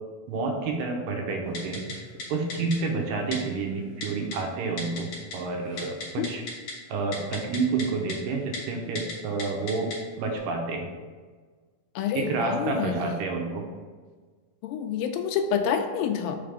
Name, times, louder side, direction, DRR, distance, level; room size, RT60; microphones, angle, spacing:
voice 1, 0.3-2.0 2.3-6.4 6.9-9.9 10.2-10.9 12.1-13.6, right 4 dB, 80° right, 2 dB, 2.3 m, -29 dB
Typing, 1.5-1.9 2.2-2.3 2.5-2.8 3.3-3.4 4.0-4.4 4.8-5.4 5.6-6.7 7.1-8.1 8.5-8.6 8.9-9.1 9.4-10.0 10.4-10.5, left 3 dB, 60° left, 2.2 m, -35 dB
voice 2, 12.0-13.1 14.6-16.4, left 7 dB, 85° left, 6 dB, 2.3 m, -28 dB
5.7 x 3.4 x 5.1 m, 1.5 s
omnidirectional pair, 4.0 m